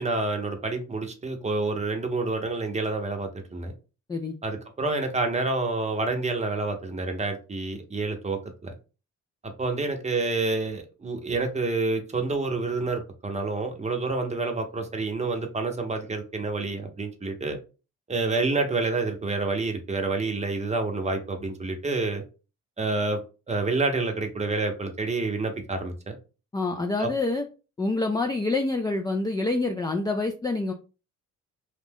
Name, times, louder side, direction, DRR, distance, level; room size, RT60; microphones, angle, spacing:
voice 1, 0.0-3.7 4.4-8.7 9.6-17.6 18.1-22.2 22.8-23.2 23.5-26.1 27.0-27.1, right 3 dB, 20° right, 4 dB, 0.7 m, -28 dB
voice 2, 26.5-27.4 27.8-30.7, left 2 dB, 15° left, 2 dB, 0.3 m, -26 dB
2.5 x 2.2 x 3.4 m, 0.33 s
cardioid pair, 90°, 30 cm